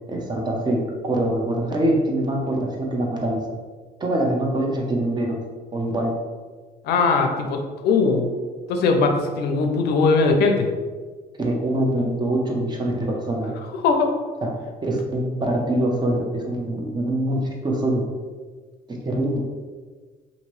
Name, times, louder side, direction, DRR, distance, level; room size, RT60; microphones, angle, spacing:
voice 1, 0.1-3.5 4.0-5.4 5.7-6.1 11.4-13.5 14.4-14.5 14.8-18.1 18.9-19.4, right 1 dB, 25° right, 0 dB, 0.6 m, -24 dB
voice 2, 6.8-8.3 8.7-10.7 13.8-14.1, left 4 dB, 75° left, 4 dB, 0.5 m, -20 dB
2.8 x 2.6 x 3.1 m, 1.5 s
cardioid pair, 110°, 17 cm